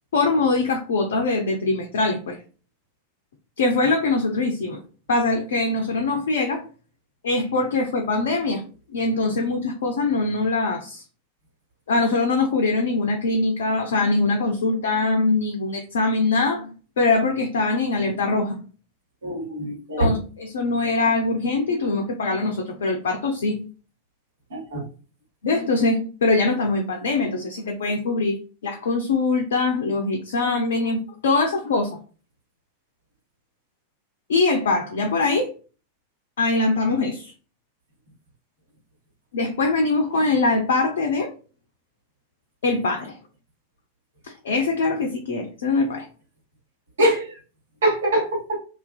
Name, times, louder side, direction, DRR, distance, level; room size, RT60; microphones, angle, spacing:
voice 1, 0.1-2.4 3.6-4.8 5.1-6.6 7.2-8.6 8.9-11.0 11.9-18.6 20.0-23.6 25.4-32.0 34.3-35.5 36.4-37.3 39.3-41.3 42.6-43.2 44.2-46.1, left 3 dB, 60° left, 3 dB, 0.3 m, -23 dB
voice 2, 19.2-20.1 24.5-24.8 47.0-47.4 47.8-48.6, right 1 dB, 65° right, -3 dB, 1.2 m, -23 dB
2.4 x 2.2 x 2.3 m, 0.37 s
figure-of-eight pair, 90°, 0 cm